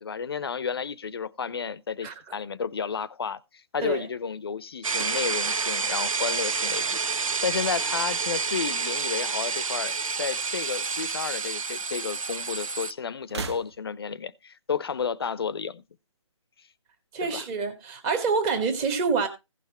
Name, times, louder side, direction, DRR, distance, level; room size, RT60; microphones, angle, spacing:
voice 1, 0.0-6.8 7.1-15.8 17.2-17.4, left 6 dB, 45° left, 0.7 m, -32 dB
sound 1, 4.8-12.9, right 5 dB, 90° right, 0.8 m, -29 dB
sound 2, 4.9-7.2 7.5-8.1 9.2-10.2 10.5-10.6 11.7-11.8 13.2-14.2, right 4 dB, 55° right, 1.2 m, -41 dB
voice 2, 17.1-19.3, right 5 dB, 10° right, 1.2 m, -26 dB
16.0 x 5.9 x 4.2 m
hypercardioid pair, 170°, 17 cm